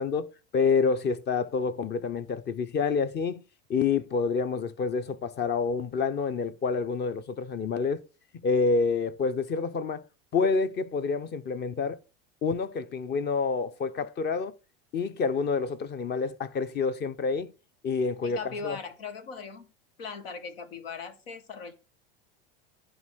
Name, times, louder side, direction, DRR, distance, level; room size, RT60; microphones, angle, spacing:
voice 1, 0.0-3.4 3.7-8.0 8.4-10.0 10.3-12.0 12.4-14.5 14.9-17.5 17.8-18.8, left 4 dB, 35° left, 0.9 m, -28 dB
voice 2, 18.2-19.7 20.0-21.7, left 5 dB, 85° left, 1.7 m, -39 dB
10.5 x 3.8 x 6.3 m
hypercardioid pair, 100°, 29 cm